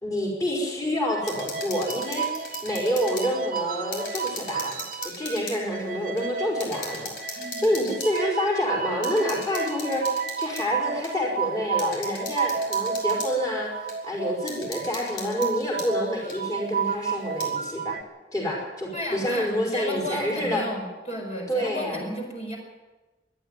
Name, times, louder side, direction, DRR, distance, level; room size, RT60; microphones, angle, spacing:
voice 1, 0.0-13.7 14.0-18.0 18.3-20.7 21.5-22.0, left 1 dB, 20° left, -3 dB, 4.9 m, -28 dB
sound 1, 1.1-5.4 5.7-18.0, right 6 dB, 50° right, 0.9 m, -32 dB
sound 2, 1.2-3.3 3.6-5.6 6.2-6.3 6.6-8.2 9.0-10.7 11.0-11.1 11.8-13.3 13.9-14.0 14.5-15.9 16.3-16.4 17.2-17.5, left 3 dB, 80° left, 5.3 m, -38 dB
voice 2, 7.4-7.7 18.9-22.6, left 1 dB, 40° left, 0 dB, 4.9 m, -34 dB
25.0 x 10.5 x 9.7 m, 1.2 s
head